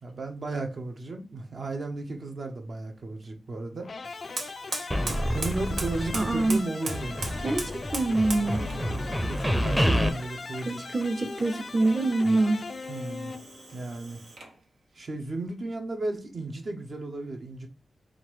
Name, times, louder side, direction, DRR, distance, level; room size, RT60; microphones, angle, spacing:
voice 1, 0.0-3.9 5.3-7.5 8.5-10.8 12.9-13.3 13.7-14.2 15.0-17.7, right 2 dB, 60° right, 0.9 m, -35 dB
sound 1, 3.8-13.8, left 4 dB, 55° left, 0.4 m, -40 dB
Fire, 4.0-14.6, right 3 dB, 90° right, 1.1 m, -41 dB
sound 2, 4.9-6.6 6.8-10.1, equal, 5° right, 0.6 m, -28 dB
voice 2, 6.1-6.6 7.4-8.6 10.6-12.7, right 2 dB, 35° right, 0.7 m, -25 dB
3.8 x 2.5 x 4.6 m
cardioid pair, 80°, 0 cm